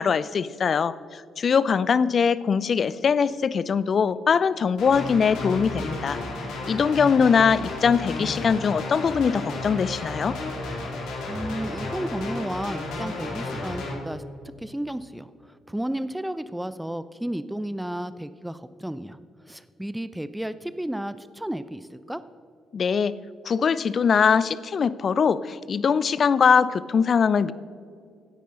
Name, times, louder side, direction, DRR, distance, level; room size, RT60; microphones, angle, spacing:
voice 1, 0.0-6.2 6.7-10.4 22.7-23.1 23.4-27.5, left 6 dB, 50° left, 17 dB, 0.5 m, -22 dB
sound 1, 4.8-13.9, left 2 dB, 65° left, 2.4 m, -33 dB
voice 2, 11.3-14.2 14.6-19.2 19.5-22.2, right 1 dB, 5° right, 14 dB, 0.5 m, -33 dB
16.5 x 10.0 x 3.8 m, 2.4 s
hypercardioid pair, 45°, 0 cm